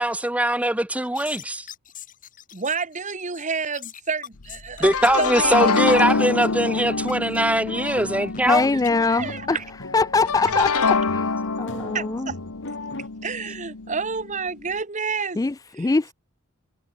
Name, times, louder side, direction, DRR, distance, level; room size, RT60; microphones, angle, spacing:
voice 1, 0.0-1.7 4.8-8.7, right 1 dB, 5° right, 1.3 m, -22 dB
sound 1, 1.0-9.4, left 9 dB, 40° left, 2.2 m, -43 dB
voice 2, 2.5-4.9 5.2-5.7 9.1-9.6 11.9-12.4 13.2-15.4 15.8-16.1, right 5 dB, 35° right, 1.4 m, -29 dB
sound 2, 4.4-9.6 10.3-14.3, left 4 dB, 90° left, 1.3 m, -26 dB
sound 3, 6.2-13.1, left 3 dB, 60° left, 2.8 m, -37 dB
voice 3, 8.4-9.6 9.9-10.7 11.1-12.3 15.4-16.1, left 3 dB, 15° left, 0.3 m, -22 dB
head